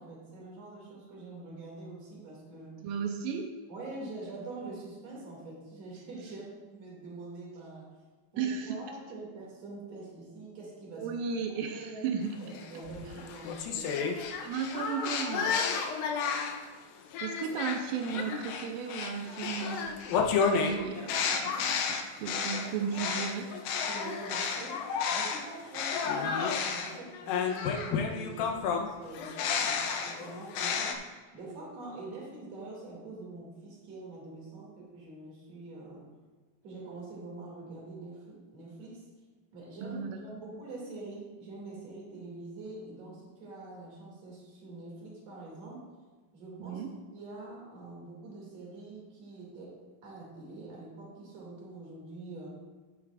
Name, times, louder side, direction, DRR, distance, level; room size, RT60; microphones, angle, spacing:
voice 1, 0.0-2.8 3.7-7.9 8.3-11.1 11.7-12.0 12.4-14.0 23.9-36.1 36.6-39.0 39.5-45.8 46.3-46.8 47.1-52.5, right 2 dB, 45° right, -4 dB, 3.1 m, -45 dB
voice 2, 2.8-3.5 8.4-8.8 11.0-12.3 14.4-16.0 17.2-20.1 20.4-23.5 39.8-40.2 46.6-46.9, right 6 dB, 85° right, 3 dB, 1.9 m, -35 dB
sound 1, 12.5-16.7 17.1-25.4 25.7-30.9, left 6 dB, 75° left, 2.2 m, -31 dB
11.0 x 9.7 x 2.4 m, 1.4 s
omnidirectional pair, 4.7 m